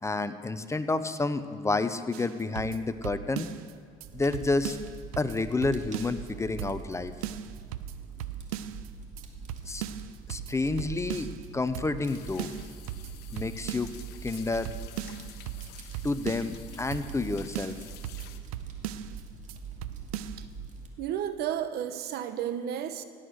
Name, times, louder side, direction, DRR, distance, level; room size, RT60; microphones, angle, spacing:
voice 1, 0.0-3.5 4.1-4.8 5.2-7.1 9.7-9.8 10.3-12.5 13.3-13.9 14.2-14.7 16.0-17.7, left 3 dB, 15° left, 11 dB, 0.8 m, -29 dB
sound 1, 2.1-3.7 4.0-4.1 4.3-6.3 6.6-7.0 7.2-8.9 9.2-9.3 9.5-11.5 11.7-12.1 12.4-14.0 14.3-14.4 14.6-16.6 16.9-17.3 17.5-19.2 19.5-19.6 19.8-20.4, right 11 dB, 90° right, 0.5 m, -38 dB
Fire, 4.0-20.9, right 5 dB, 45° right, 2.3 m, -44 dB
sound 2, 12.1-18.4, left 11 dB, 65° left, 1.1 m, -51 dB
voice 2, 21.0-23.0, right 10 dB, 65° right, 11 dB, 1.0 m, -32 dB
17.5 x 8.3 x 6.4 m, 2.3 s
supercardioid pair, 80°, 18 cm